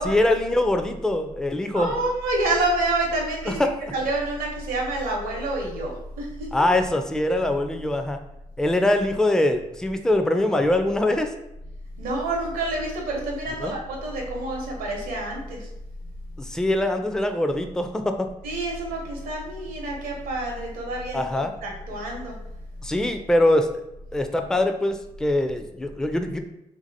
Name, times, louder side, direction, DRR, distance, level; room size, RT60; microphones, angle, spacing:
voice 1, 0.0-1.9 3.5-3.8 6.5-8.2 8.6-11.3 13.6-13.8 16.4-18.1 21.1-21.5 22.8-23.8 24.1-26.4, left 1 dB, 5° left, 6 dB, 0.4 m, -23 dB
voice 2, 1.7-3.6 3.9-6.5 12.0-15.7 18.4-21.2 21.6-22.4, right 2 dB, 85° right, 0 dB, 0.7 m, -28 dB
2.8 x 2.6 x 2.6 m, 0.86 s
supercardioid pair, 50°, 15 cm